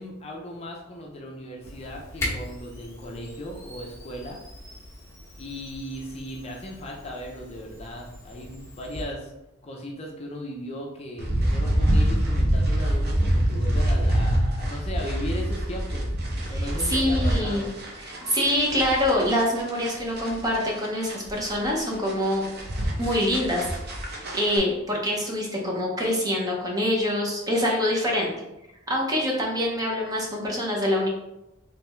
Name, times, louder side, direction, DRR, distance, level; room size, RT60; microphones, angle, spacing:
voice 1, 0.0-4.4 5.4-9.3 9.6-16.1 16.5-17.7, equal, 30° left, -1 dB, 0.5 m, -37 dB
Camera, 1.6-9.0, left 1 dB, 15° left, 1.1 m, -39 dB
sound 1, 11.2-24.6, right 1 dB, 50° right, 0.8 m, -26 dB
voice 2, 16.5-17.6 18.0-22.4 23.0-23.7 24.1-28.3 28.9-31.1, left 1 dB, 20° right, -2 dB, 0.7 m, -25 dB
3.4 x 3.3 x 3.0 m, 0.92 s
head